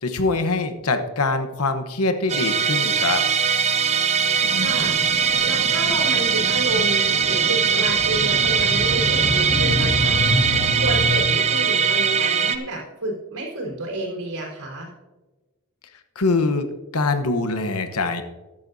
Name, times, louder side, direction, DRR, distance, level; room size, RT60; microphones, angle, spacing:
voice 1, 0.0-3.2 16.2-18.2, left 3 dB, 85° left, 8 dB, 1.1 m, -23 dB
Musical instrument, 2.3-12.6, right 6 dB, 30° right, 0.5 m, -21 dB
sound 1, 4.4-11.2, left 1 dB, 50° right, 1.8 m, -28 dB
voice 2, 4.5-5.0 5.4-10.2 10.8-14.9, right 2 dB, 85° right, -1 dB, 4.1 m, -30 dB
14.5 x 11.0 x 2.7 m, 1.2 s
head